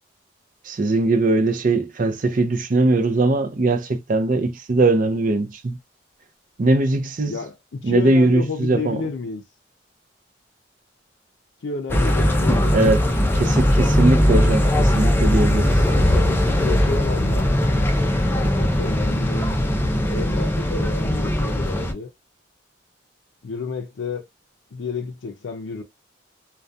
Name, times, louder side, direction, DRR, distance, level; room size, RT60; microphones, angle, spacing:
voice 1, 0.6-5.8 6.6-7.4 7.8-9.0 12.7-13.0 13.3-15.7, right 2 dB, 45° right, 0.5 m, -20 dB
voice 2, 7.3-9.4 11.6-12.9 13.4-13.7 15.6-17.5 18.3-19.5 20.1-22.1 23.4-24.2 24.7-25.8, left 4 dB, 70° left, 0.5 m, -31 dB
sound 1, 11.9-21.9, equal, 10° left, 0.4 m, -19 dB
2.3 x 2.2 x 2.6 m
head